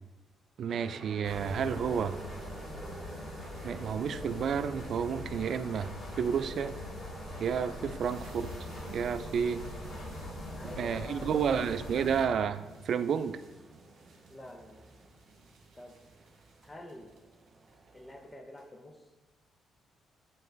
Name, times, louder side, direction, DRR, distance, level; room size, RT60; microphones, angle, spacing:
voice 1, 0.6-2.2 3.6-6.8 7.4-8.5 8.9-9.6 10.8-13.4, right 7 dB, 60° right, 12 dB, 0.3 m, -31 dB
sound 1, 0.7-18.3, right 3 dB, 35° right, 0.7 m, -52 dB
sound 2, 1.2-12.2, left 1 dB, 60° left, 1.8 m, -42 dB
sound 3, 8.0-18.1 18.5-18.8, right 3 dB, 80° right, 1.6 m, -55 dB
voice 2, 10.4-11.6 14.3-15.0 15.8-16.0 16.6-17.1 17.9-19.1, left 1 dB, 15° left, 4 dB, 0.9 m, -48 dB
9.0 x 3.1 x 3.9 m, 1.2 s
cardioid pair, 90°, 0 cm